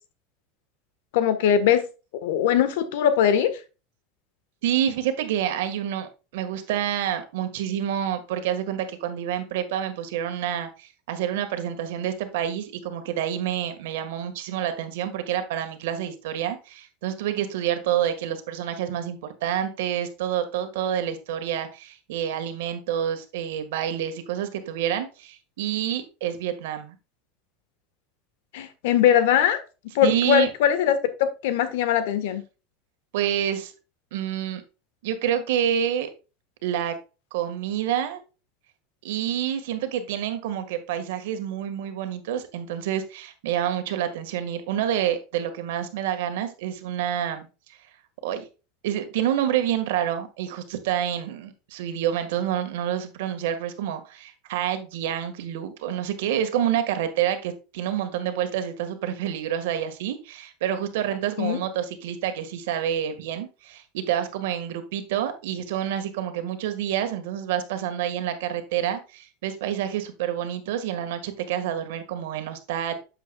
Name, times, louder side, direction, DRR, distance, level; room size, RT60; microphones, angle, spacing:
voice 1, 1.1-1.9 2.2-3.6 28.5-29.6 29.9-32.4 61.4-61.6, left 9 dB, 80° left, 1.4 m, -21 dB
voice 2, 4.6-26.9 30.0-30.5 33.1-33.7 34.1-34.6 35.0-36.1 36.6-36.9 37.3-38.2 39.0-47.5 48.2-48.4 48.8-72.9, right 10 dB, 80° right, 1.7 m, -28 dB
8.4 x 7.7 x 2.3 m
supercardioid pair, 140°, 0 cm